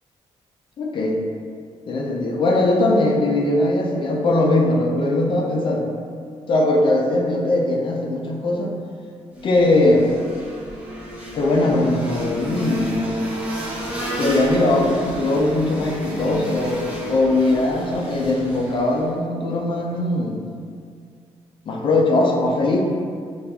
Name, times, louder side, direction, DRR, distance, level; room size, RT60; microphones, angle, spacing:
voice 1, 0.8-1.2 1.9-5.9 6.5-8.7 9.4-10.1 11.3-13.0 14.2-20.4 21.7-22.8, left 2 dB, 45° left, 0 dB, 0.4 m, -20 dB
sound 1, 9.3-19.1, equal, 10° right, 0.6 m, -31 dB
4.1 x 2.3 x 2.3 m, 2.2 s
cardioid pair, 120°, 11 cm